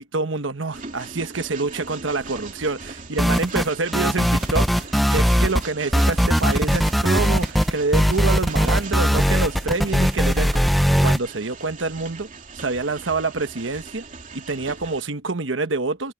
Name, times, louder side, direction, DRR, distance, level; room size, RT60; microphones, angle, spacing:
voice 1, 0.1-10.6 11.0-12.3 12.5-14.0 14.3-16.1, right 3 dB, 80° right, 1.2 m, -26 dB
Train, 0.7-15.0, right 4 dB, 45° right, 3.0 m, -39 dB
sound 1, 3.2-3.7 3.9-5.6 5.9-11.2, equal, ahead, 0.4 m, -19 dB
head